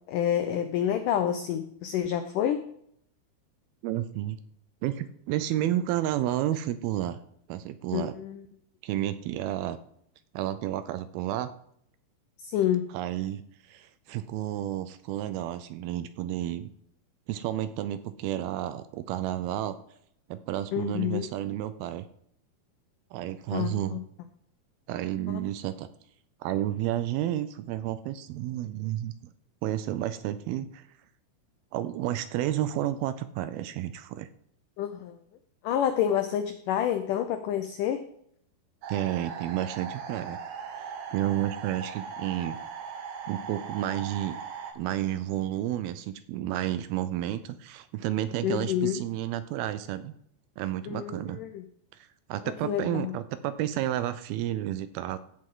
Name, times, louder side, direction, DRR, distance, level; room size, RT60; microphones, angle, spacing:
voice 1, 0.1-2.7 7.9-8.4 12.4-12.9 20.7-21.3 23.5-24.0 25.3-25.4 34.8-35.2 35.6-38.1 48.4-49.0 50.9-51.6 52.6-53.1, left 10 dB, 85° left, 8 dB, 1.8 m, -28 dB
voice 2, 3.8-4.4 4.8-7.2 7.5-8.2 8.8-9.8 10.3-11.5 12.9-13.4 13.7-16.7 17.3-19.8 20.3-22.1 23.1-24.0 24.9-25.9 26.4-29.3 29.6-30.9 31.7-34.3 38.9-40.4 40.8-42.6 43.3-44.4 44.8-50.1 50.6-51.4 51.9-55.2, right 12 dB, 80° right, 12 dB, 2.4 m, -31 dB
sound 1, 38.8-44.7, right 6 dB, 60° right, 2.2 m, -39 dB
16.0 x 7.5 x 3.8 m, 0.70 s
omnidirectional pair, 4.6 m